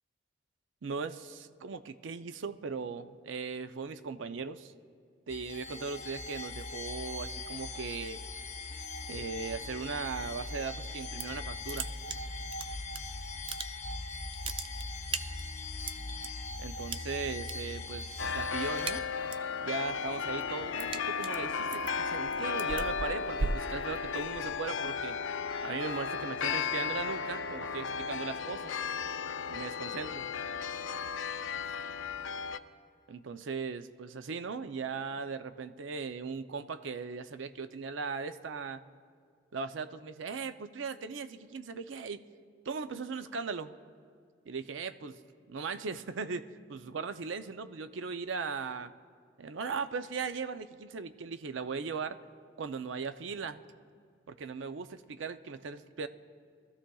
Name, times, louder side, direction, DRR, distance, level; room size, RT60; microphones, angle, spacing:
voice 1, 0.8-4.7 5.3-8.2 9.1-11.9 16.6-19.0 19.6-25.2 25.6-28.8 29.5-30.2 33.1-38.8 39.5-42.2 42.7-43.7 44.5-45.2 45.5-48.9 49.4-52.2 52.6-53.6 54.3-56.1, right 5 dB, 85° right, 10 dB, 0.5 m, -38 dB
sound 1, 5.3-19.0, left 3 dB, 35° left, 0.7 m, -40 dB
sound 2, 10.9-11.4 11.7-13.0 13.3-14.0 14.3-16.3 16.9-17.5 17.8-18.2 18.5-19.5 19.9-24.4, right 4 dB, 25° right, 0.3 m, -38 dB
sound 3, 18.2-32.6, left 6 dB, 90° left, 0.5 m, -35 dB
22.0 x 14.0 x 2.3 m, 2.2 s
head